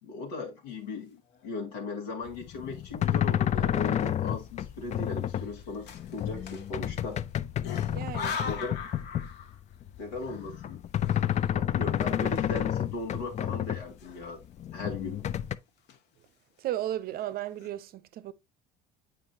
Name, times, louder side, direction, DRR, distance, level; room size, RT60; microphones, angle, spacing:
voice 1, 0.0-7.2 8.4-8.7 10.0-10.8 11.5-14.4 14.7-15.2, left 3 dB, 80° left, 2.0 m, -38 dB
sound 1, 1.2-1.7 2.3-2.4 2.6-3.3 3.8-4.0 4.9-7.2 7.6-9.8 10.1-12.9 13.2-13.3 13.9-14.6 15.0-15.3 15.7-16.3 16.9-17.0 17.2-17.7, left 6 dB, 55° left, 1.2 m, -42 dB
sound 2, 2.3-9.5 9.8-13.8 14.2-15.6, left 10 dB, 35° left, 0.4 m, -30 dB
voice 2, 7.9-8.4 16.6-18.3, right 13 dB, 50° right, 0.6 m, -34 dB
8.8 x 4.9 x 2.7 m
hypercardioid pair, 65°, 21 cm